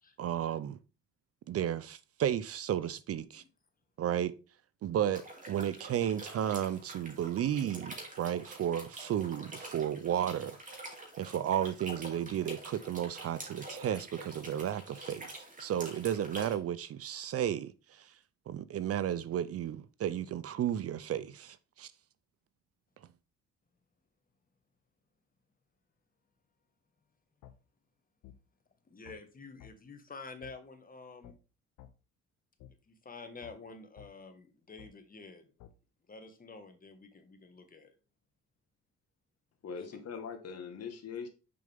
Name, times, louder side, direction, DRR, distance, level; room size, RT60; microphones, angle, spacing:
voice 1, 0.2-0.8 1.5-3.4 4.0-4.3 4.8-10.6 10.9-15.3 15.6-17.7 18.5-21.9, right 10 dB, 50° right, 0.5 m, -33 dB
sound 1, 5.1-16.5, right 2 dB, 25° right, 2.6 m, -47 dB
sound 2, 27.4-27.6 28.2-28.4 29.0-29.2 29.6-29.7 30.4-30.6 31.2-31.4 31.8-31.9 32.6-32.7 33.4-33.6 34.0-34.1 34.8-34.9 35.6-35.7, left 11 dB, 85° left, 0.8 m, -52 dB
voice 2, 28.8-31.4 32.9-35.5 36.0-37.9, left 3 dB, 30° left, 1.4 m, -49 dB
voice 3, 39.6-41.3, left 6 dB, 55° left, 1.6 m, -41 dB
6.7 x 5.2 x 3.5 m
cardioid pair, 90°, 30 cm